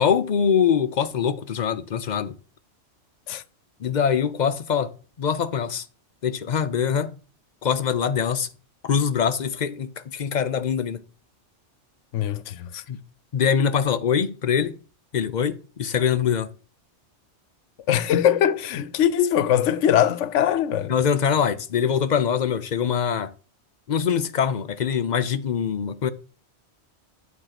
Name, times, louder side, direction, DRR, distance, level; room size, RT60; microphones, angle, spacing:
voice 1, 0.0-2.3 3.8-4.9 5.2-5.8 6.2-7.2 7.6-8.5 8.8-11.0 12.9-13.0 13.3-14.8 15.1-16.5 20.9-23.3 23.9-26.1, left 7 dB, 50° left, 0.6 m, -23 dB
voice 2, 12.1-12.8 17.9-20.9, left 10 dB, 80° left, 0.9 m, -21 dB
9.1 x 3.6 x 5.8 m
omnidirectional pair, 1.2 m